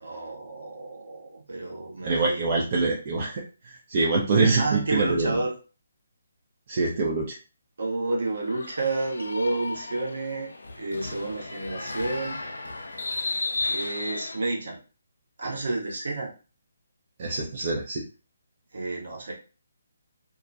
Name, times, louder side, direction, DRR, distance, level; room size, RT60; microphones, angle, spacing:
voice 1, 0.0-2.7 4.6-5.5 7.8-10.5 10.8-12.4 13.7-14.8 15.4-16.3 18.7-19.3, right 2 dB, 60° right, -1 dB, 0.9 m, -30 dB
voice 2, 2.0-3.4 3.9-5.4 6.7-7.4 17.2-18.0, right 3 dB, 40° right, -2 dB, 0.5 m, -24 dB
Volleyball game and crowd, 8.2-14.4, left 3 dB, 70° left, 0.4 m, -34 dB
2.3 x 2.1 x 2.5 m, 0.34 s
figure-of-eight pair, 145°, 0 cm